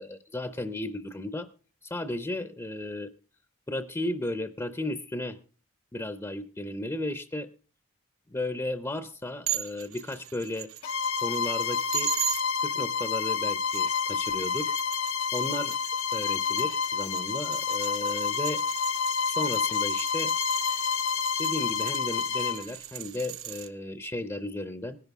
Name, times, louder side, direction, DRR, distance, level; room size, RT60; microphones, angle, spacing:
voice 1, 0.0-1.5 1.8-3.1 3.7-5.4 5.9-7.5 8.3-10.7 11.2-12.1 12.6-14.8 15.3-15.8 16.1-18.6 19.3-20.3 21.4-25.0, left 1 dB, 15° left, 10 dB, 0.5 m, -34 dB
sound 1, 9.5-12.4 13.5-23.7, right 12 dB, 75° right, 0.8 m, -38 dB
Bowed string instrument, 10.8-22.6, left 6 dB, 80° left, 0.6 m, -29 dB
19.5 x 11.0 x 3.5 m, 0.40 s
head